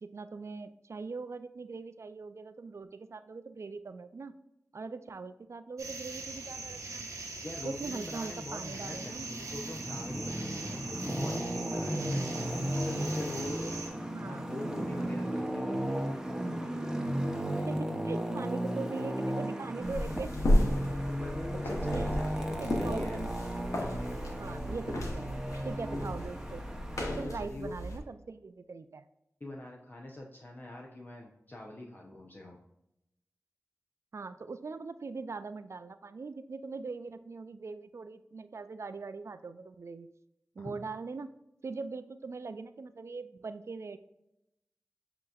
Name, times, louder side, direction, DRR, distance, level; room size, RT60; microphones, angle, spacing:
voice 1, 0.0-4.4 4.7-7.1 7.6-9.3 14.1-14.6 17.5-20.3 20.6-20.7 21.5-21.6 21.9-22.1 22.6-23.3 24.4-25.2 25.6-26.6 27.2-29.0 34.1-40.1 40.6-41.3 41.6-44.0, right 4 dB, 65° right, 11 dB, 0.4 m, -41 dB
sound 1, 5.8-13.9, right 3 dB, 90° right, 1.1 m, -42 dB
voice 2, 7.4-12.5 12.7-13.7 14.0-16.1 21.1-23.2 27.0-27.7 29.4-32.6 40.6-40.8, left 1 dB, 40° left, 0 dB, 0.7 m, -43 dB
Traffic noise roadway noise, 8.7-27.2, right 1 dB, 10° right, 0.8 m, -35 dB
sound 2, 19.8-28.0, left 1 dB, 90° left, 1.0 m, -33 dB
7.5 x 2.9 x 2.4 m, 0.85 s
cardioid pair, 40°, 5 cm